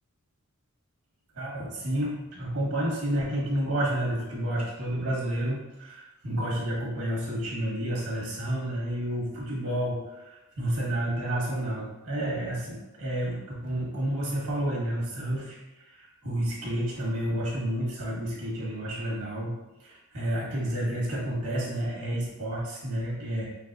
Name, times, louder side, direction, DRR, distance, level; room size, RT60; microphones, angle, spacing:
voice 1, 1.3-15.6 15.9-19.5 19.8-23.5, right 1 dB, 90° right, -5 dB, 1.4 m, -30 dB
4.0 x 3.4 x 2.5 m, 1.0 s
head